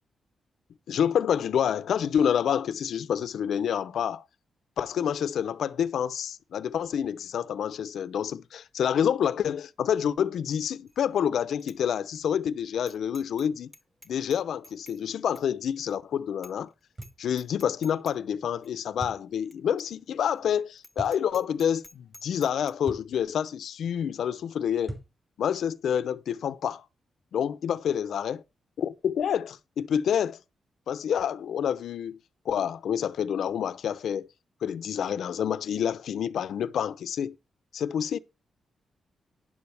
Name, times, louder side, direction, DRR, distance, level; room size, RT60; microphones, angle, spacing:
voice 1, 0.9-4.2 4.8-13.7 14.1-16.7 17.2-25.0 25.4-26.8 27.3-28.4 28.8-30.4 30.9-32.2 32.5-34.3 34.6-37.4 37.7-38.2, left 8 dB, 75° left, 0.7 m, -28 dB
Bicycle bell, 10.9-11.2 11.6-11.8 12.1-12.2 12.9-13.5 13.7-15.0 15.3-15.5 15.9-16.0 16.4-16.7 16.9-17.1 17.4-18.1 18.6-18.7 19.5-19.6 19.8-19.9 20.3-20.4 20.8-22.7, left 1 dB, 5° left, 1.1 m, -51 dB
sound 1, 17.0-17.2 19.0-19.3 21.0-21.2 22.9-23.1 24.9-25.2, right 2 dB, 30° right, 5.3 m, -38 dB
12.0 x 10.0 x 3.4 m
cardioid pair, 110°, 0 cm